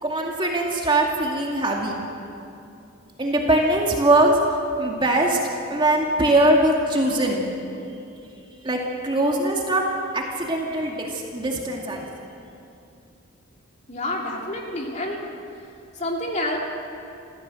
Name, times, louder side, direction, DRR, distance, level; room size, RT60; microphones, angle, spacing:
voice 1, 0.0-1.9 3.2-4.4 4.8-5.4 5.7-7.4 8.6-9.8 10.1-12.1, right 1 dB, 20° right, -1 dB, 2.3 m, -21 dB
voice 2, 13.9-15.2 16.0-16.6, left 1 dB, 30° left, -1 dB, 2.9 m, -28 dB
26.0 x 15.0 x 7.7 m, 2.7 s
head